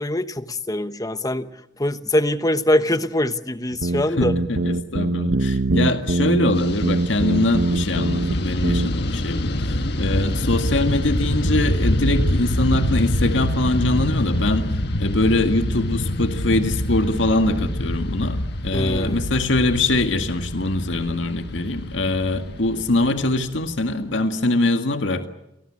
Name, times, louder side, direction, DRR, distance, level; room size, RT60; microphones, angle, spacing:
voice 1, 0.0-1.5 1.8-4.4 18.7-19.3, left 1 dB, 20° left, 11 dB, 1.1 m, -23 dB
sound 1, 3.7-8.4 8.6-8.9, right 2 dB, 75° right, 1.2 m, -23 dB
voice 2, 4.2-25.3, left 2 dB, 85° left, 7 dB, 2.0 m, -23 dB
Fixed-wing aircraft airplane, 6.5-24.0, left 1 dB, 60° left, 1.6 m, -25 dB
29.5 x 18.5 x 8.7 m, 0.85 s
head